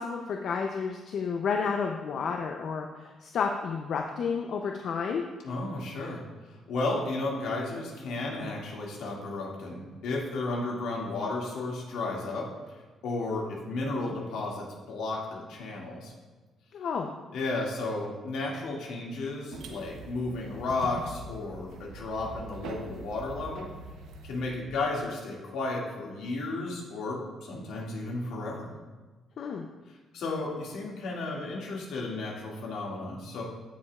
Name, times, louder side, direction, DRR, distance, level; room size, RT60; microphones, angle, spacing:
voice 1, 0.0-5.2 16.7-17.1 29.4-29.7, left 5 dB, 65° left, 2 dB, 0.6 m, -31 dB
voice 2, 5.4-6.2 6.7-12.5 13.0-16.1 17.3-23.7 24.2-28.7 30.1-33.4, left 2 dB, 80° left, -3 dB, 2.1 m, -33 dB
sound 1, 19.5-24.5, right 3 dB, 80° right, 0.8 m, -43 dB
15.5 x 5.3 x 2.4 m, 1.3 s
cardioid pair, 90°, 0 cm